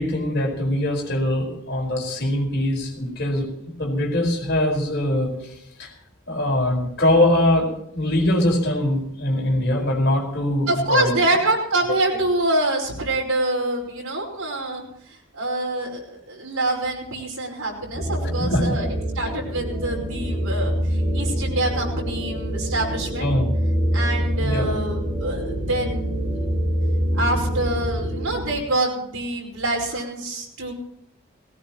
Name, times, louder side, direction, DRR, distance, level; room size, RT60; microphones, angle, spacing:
voice 1, 0.0-3.5 3.8-5.3 5.8-5.9 6.3-11.2 18.4-18.8 23.2-23.5 24.4-24.7, left 1 dB, 50° left, 0 dB, 4.8 m, -22 dB
voice 2, 10.7-23.3 23.9-26.1 27.1-30.7, right 2 dB, 90° right, -1 dB, 5.1 m, -26 dB
sound 1, 17.9-28.6, equal, ahead, 6.4 m, -25 dB
18.5 x 17.5 x 3.1 m, 0.73 s
head